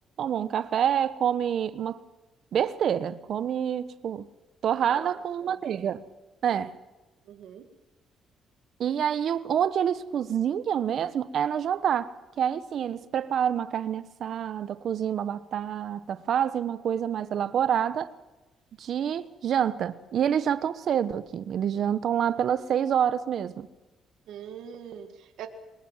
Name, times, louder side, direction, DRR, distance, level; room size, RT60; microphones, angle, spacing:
voice 1, 0.2-2.0 2.5-4.3 4.6-6.0 6.4-6.7 8.8-18.1 18.8-23.7, right 9 dB, 65° right, 1.1 m, -27 dB
voice 2, 4.8-5.5 6.5-6.7 7.3-7.7 24.3-25.5, right 9 dB, 80° right, 2.0 m, -43 dB
23.5 x 20.5 x 7.4 m
cardioid pair, 90°, 0 cm